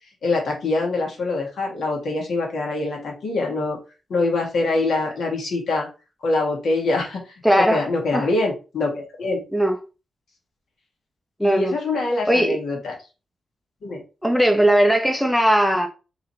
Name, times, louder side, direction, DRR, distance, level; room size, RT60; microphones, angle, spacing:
voice 1, 0.2-3.8 4.1-5.9 6.2-9.4 11.4-12.9 13.8-14.0, left 2 dB, 70° left, 2.0 m, -24 dB
voice 2, 7.4-7.9 8.1-8.3 9.5-9.8 11.4-11.7 12.3-12.6 14.2-15.9, equal, ahead, 0.7 m, -18 dB
4.2 x 3.8 x 3.2 m
wide cardioid pair, 125°, 0 cm